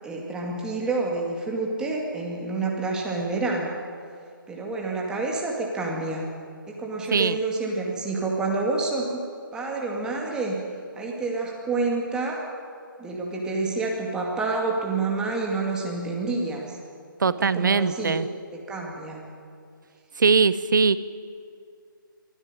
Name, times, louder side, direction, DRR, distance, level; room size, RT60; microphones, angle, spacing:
voice 1, 0.0-3.7 4.5-6.3 6.7-9.2 9.5-10.7 10.9-12.4 13.0-16.7 17.2-18.2 18.5-19.2, right 3 dB, 5° right, -1 dB, 2.2 m, -28 dB
voice 2, 17.2-18.3 20.2-21.0, right 5 dB, 60° right, 15 dB, 0.9 m, -21 dB
23.5 x 12.5 x 9.9 m, 2.3 s
figure-of-eight pair, 150°, 12 cm